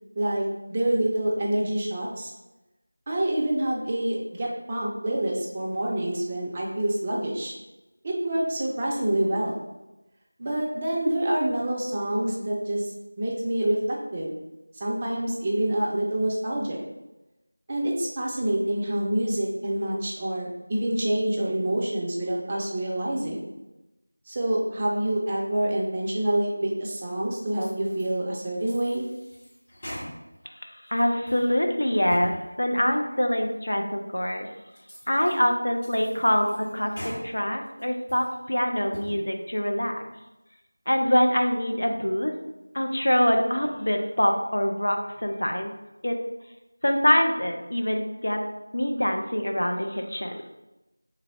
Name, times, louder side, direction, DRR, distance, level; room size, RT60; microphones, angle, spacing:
voice 1, 0.2-2.3 3.1-7.5 8.0-9.6 10.4-12.9 13.2-14.3 14.8-16.8 17.7-23.4 24.3-29.1, right 1 dB, 15° right, -3 dB, 0.4 m, -27 dB
sound 1, 27.5-28.2 28.6-30.5 30.9-31.5 31.9-32.4 32.8-32.9 33.5-33.6 34.2-34.3 34.7-35.5 35.8-37.2 37.7-38.3 38.8-39.2, equal, 30° left, 0.9 m, -42 dB
voice 2, 30.9-34.5 35.1-40.0 40.9-42.3 42.7-45.7 46.0-46.2 46.8-48.4 48.7-50.4, equal, 75° left, 3 dB, 0.6 m, -24 dB
3.4 x 2.9 x 3.6 m, 1.0 s
figure-of-eight pair, 175°, 0 cm